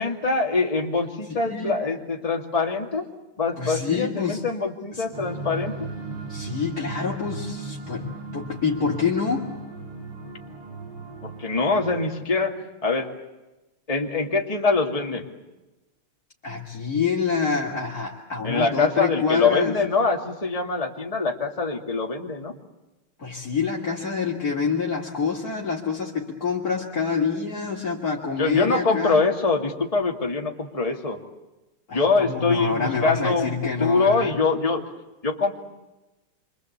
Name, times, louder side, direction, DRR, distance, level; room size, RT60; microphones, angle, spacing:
voice 1, 0.0-3.1 3.4-5.8 11.2-12.6 12.8-13.1 13.9-15.2 18.4-22.6 28.4-31.2 31.9-33.5 33.8-34.8 35.2-35.5, left 4 dB, 15° left, 1 dB, 2.5 m, -24 dB
voice 2, 1.4-1.8 3.6-4.4 4.9-5.0 6.3-9.5 16.4-19.7 23.2-29.2 31.9-34.3, left 5 dB, 40° left, -3 dB, 3.2 m, -27 dB
sound 1, 5.1-12.2, right 3 dB, 85° right, 7.9 m, -36 dB
28.0 x 25.0 x 8.2 m, 1.0 s
omnidirectional pair, 2.4 m